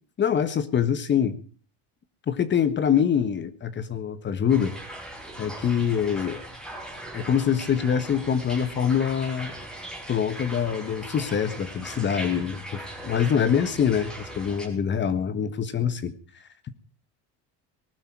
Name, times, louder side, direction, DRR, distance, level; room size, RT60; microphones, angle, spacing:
voice 1, 0.2-1.4 2.3-4.8 5.4-6.4 7.1-9.5 10.1-16.1, left 8 dB, 35° left, 14 dB, 1.5 m, -24 dB
sound 1, 4.5-14.7, right 1 dB, ahead, 5.0 m, -39 dB
19.5 x 12.0 x 4.8 m, 0.39 s
cardioid pair, 120°, 32 cm